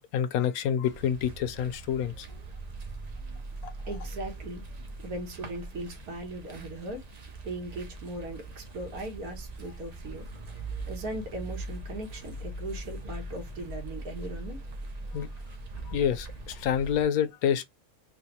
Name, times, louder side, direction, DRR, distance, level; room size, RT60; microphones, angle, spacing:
voice 1, 0.0-2.3 3.6-3.7 15.1-15.3 15.9-17.6, left 8 dB, 80° left, 1.0 m, -28 dB
sound 1, 0.9-17.0, right 2 dB, 60° right, 0.4 m, -41 dB
voice 2, 3.9-4.6 5.0-7.0 7.4-10.2 10.9-14.6, right 1 dB, 80° right, 1.6 m, -38 dB
3.9 x 2.3 x 2.9 m
omnidirectional pair, 1.5 m